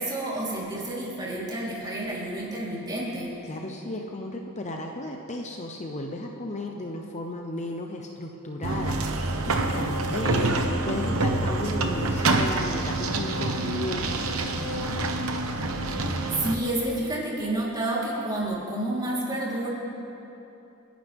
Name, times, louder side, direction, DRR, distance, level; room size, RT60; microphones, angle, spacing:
voice 1, 0.0-3.3 10.2-10.5 16.0-19.7, right 1 dB, 20° right, -6 dB, 3.9 m, -30 dB
voice 2, 3.4-10.5 10.8-15.3, left 1 dB, 35° left, 2 dB, 0.8 m, -35 dB
sound 1, 8.6-16.6, right 2 dB, 75° right, 1.2 m, -27 dB
30.0 x 11.0 x 3.6 m, 3.0 s
head